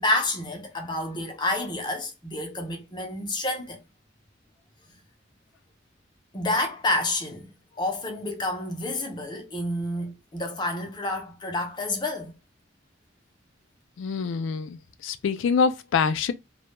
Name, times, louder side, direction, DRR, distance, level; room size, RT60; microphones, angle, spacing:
voice 1, 0.0-3.8 6.3-12.3, left 2 dB, 25° left, 0.5 m, -29 dB
voice 2, 14.0-16.3, left 5 dB, 85° left, 0.3 m, -25 dB
2.1 x 2.1 x 3.0 m
head